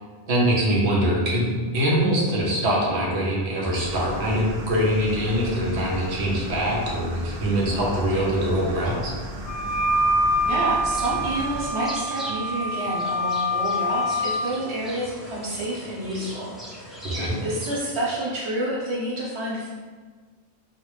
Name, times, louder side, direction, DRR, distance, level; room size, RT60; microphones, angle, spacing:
voice 1, 0.3-1.5 1.7-9.1 17.0-17.4, equal, 90° right, -4 dB, 1.2 m, -23 dB
sound 1, 3.8-11.7, equal, 65° right, 0.7 m, -36 dB
Wind instrument woodwind instrument, 9.5-14.4, equal, 60° left, 0.7 m, -25 dB
voice 2, 10.5-17.0 17.4-19.7, right 1 dB, 30° right, -6 dB, 0.8 m, -28 dB
sound 2, 10.9-17.8, equal, ahead, 0.3 m, -40 dB
4.8 x 2.0 x 3.2 m, 1.5 s
omnidirectional pair, 1.1 m